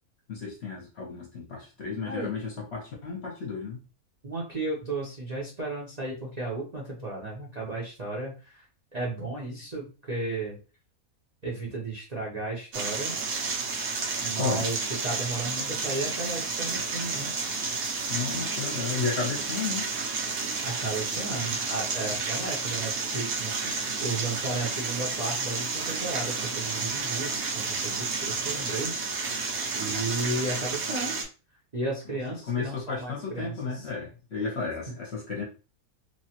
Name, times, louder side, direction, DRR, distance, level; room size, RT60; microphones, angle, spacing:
voice 1, 0.3-3.8 14.3-14.6 18.1-19.9 28.3-28.5 32.4-35.4, left 5 dB, 50° left, -1 dB, 1.0 m, -33 dB
voice 2, 4.2-8.6 8.9-10.6 11.4-13.1 14.2-14.8 15.0-17.3 20.6-28.9 29.2-31.2 31.7-33.9 34.9-35.0, right 2 dB, 35° right, -4 dB, 0.8 m, -34 dB
sound 1, 12.7-31.2, right 4 dB, 75° right, 1.2 m, -31 dB
3.0 x 2.4 x 2.8 m, 0.33 s
omnidirectional pair, 1.6 m